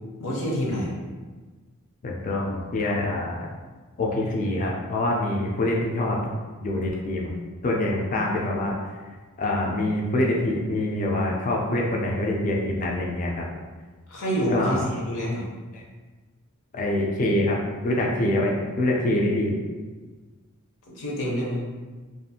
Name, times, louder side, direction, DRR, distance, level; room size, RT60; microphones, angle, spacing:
voice 1, 0.2-0.9 14.1-15.5 20.9-21.6, equal, 65° left, -3 dB, 0.7 m, -27 dB
voice 2, 2.0-3.5 4.0-6.2 6.6-7.3 7.6-8.8 9.4-13.5 14.5-14.9 15.7-15.8 16.7-17.6 17.8-19.6, left 1 dB, 35° left, -2 dB, 0.3 m, -25 dB
2.5 x 2.3 x 2.7 m, 1.4 s
head